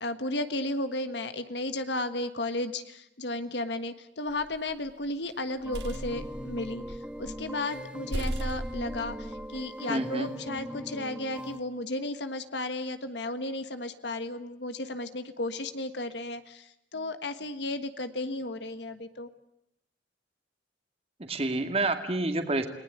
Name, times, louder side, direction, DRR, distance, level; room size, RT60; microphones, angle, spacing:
voice 1, 0.0-19.3, left 2 dB, 70° left, 9 dB, 1.6 m, -34 dB
sound 1, 4.3-4.9 5.4-7.5 7.8-7.9 8.1-9.6, right 1 dB, 70° right, 3.3 m, -36 dB
sound 2, 5.6-11.6, equal, 5° right, 1.6 m, -40 dB
voice 2, 9.9-10.3 21.3-22.7, right 2 dB, 35° right, 6 dB, 2.3 m, -28 dB
30.0 x 19.5 x 8.1 m, 0.82 s
head